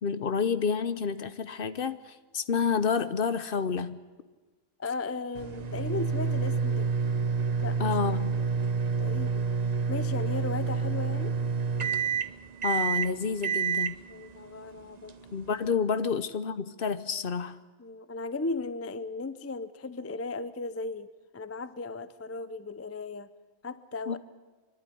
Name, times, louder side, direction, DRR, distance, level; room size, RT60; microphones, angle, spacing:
voice 1, 0.0-4.0 7.8-8.3 12.6-13.9 15.3-17.6 24.1-24.2, left 6 dB, 50° left, 13 dB, 0.9 m, -29 dB
voice 2, 4.8-6.9 7.6-8.0 9.0-9.4 9.9-11.4 14.1-15.2 17.8-23.3 23.6-24.2, left 3 dB, 20° left, 14 dB, 0.3 m, -36 dB
sound 1, 5.3-15.7, right 5 dB, 35° right, 0.8 m, -29 dB
26.0 x 11.5 x 9.9 m, 1.3 s
omnidirectional pair, 1.3 m